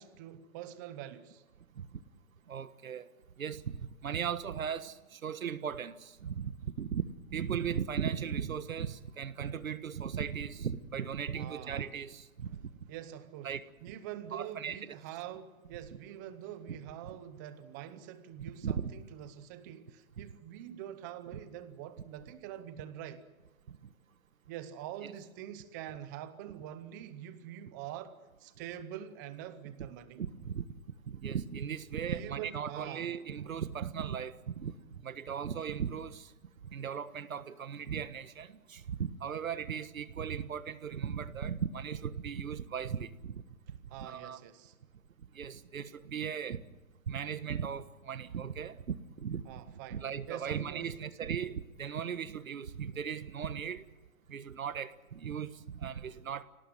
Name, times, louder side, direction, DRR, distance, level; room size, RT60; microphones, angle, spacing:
voice 1, 0.0-1.4 11.3-11.9 12.5-12.6 12.9-13.5 13.8-23.2 24.5-30.2 32.1-33.1 43.9-44.7 49.5-51.0, right 11 dB, 15° right, 0.8 m, -45 dB
voice 2, 2.5-3.1 3.4-3.7 4.0-7.0 7.3-12.5 13.4-13.6 14.3-14.8 18.6-18.9 20.2-20.3 25.0-25.1 30.2-30.6 31.1-36.3 36.7-43.4 44.0-44.4 45.3-46.6 47.1-49.4 49.9-53.8 54.3-56.4, right 7 dB, 75° right, 1.5 m, -37 dB
25.5 x 18.0 x 9.4 m
hypercardioid pair, 160°, 41 cm